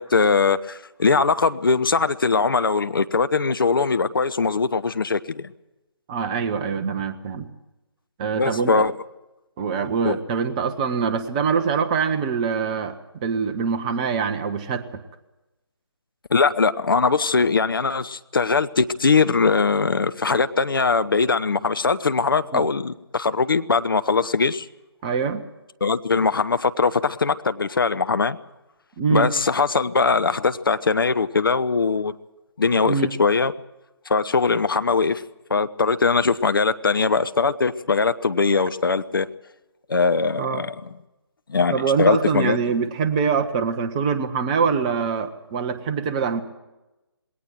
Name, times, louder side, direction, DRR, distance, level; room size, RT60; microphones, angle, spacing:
voice 1, 0.0-5.5 8.4-8.9 10.0-10.2 16.3-24.7 25.8-28.4 29.1-32.1 32.6-33.5 34.1-35.2 35.5-39.3 39.9-40.9 41.5-42.6, left 4 dB, 55° left, 12 dB, 0.8 m, -21 dB
voice 2, 6.1-7.5 8.2-8.7 9.6-15.0 22.5-22.7 25.0-25.4 29.0-29.3 32.8-33.1 40.4-40.6 41.7-46.4, right 6 dB, 15° right, 8 dB, 0.9 m, -24 dB
20.5 x 18.0 x 7.6 m, 0.99 s
figure-of-eight pair, 150°, 14 cm